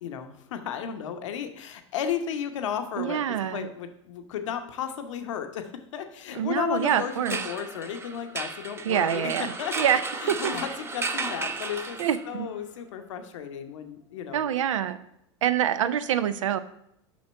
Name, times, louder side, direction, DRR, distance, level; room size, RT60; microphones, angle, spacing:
voice 1, 0.0-9.3 9.6-12.0 12.3-14.5, left 8 dB, 75° left, 7 dB, 0.9 m, -34 dB
voice 2, 3.0-3.7 6.3-7.4 8.9-10.0 10.3-10.4 12.0-12.5 14.3-15.0 15.4-16.6, right 9 dB, 85° right, 13 dB, 0.5 m, -26 dB
sound 1, 6.8-12.5, right 3 dB, 15° right, 0.6 m, -34 dB
6.2 x 5.9 x 4.4 m, 0.75 s
hypercardioid pair, 95°, 16 cm